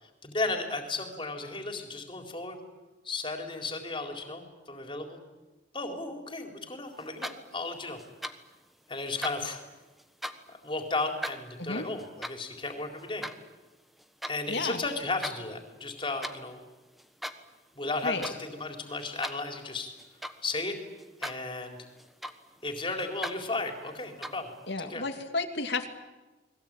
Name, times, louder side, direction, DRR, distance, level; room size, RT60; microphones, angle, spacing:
voice 1, 0.0-2.6 3.0-5.2 5.7-8.0 8.9-9.6 10.5-13.3 14.3-16.6 17.8-19.9 20.4-20.8 21.2-21.8 22.6-24.5 24.8-25.0, left 3 dB, 30° left, 4 dB, 4.1 m, -34 dB
sound 1, 7.0-7.7 8.0-8.6 8.9-10.5 11.0-14.4 14.8-15.4 15.7-16.4 17.0-17.6 17.8-18.4 18.7-20.6 21.0-21.5 21.8-22.7 23.0-23.4 24.0-24.5, equal, ahead, 1.3 m, -40 dB
voice 2, 14.5-14.8 18.0-18.3 24.7-25.9, left 3 dB, 70° left, 5 dB, 2.6 m, -32 dB
29.5 x 21.5 x 9.1 m, 1.1 s
head